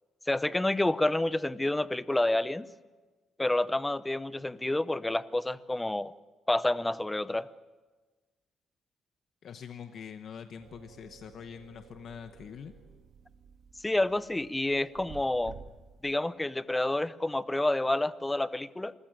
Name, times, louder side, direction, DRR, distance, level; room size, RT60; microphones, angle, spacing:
voice 1, 0.3-2.7 3.4-6.1 6.5-7.5 13.8-15.6 16.0-18.9, left 1 dB, 10° left, 16 dB, 0.8 m, -29 dB
voice 2, 9.4-12.7, left 7 dB, 60° left, 8 dB, 1.0 m, -44 dB
sound 1, 10.6-16.2, right 6 dB, 65° right, 2.5 m, -52 dB
27.5 x 15.5 x 9.1 m, 1.3 s
cardioid pair, 90°, 0 cm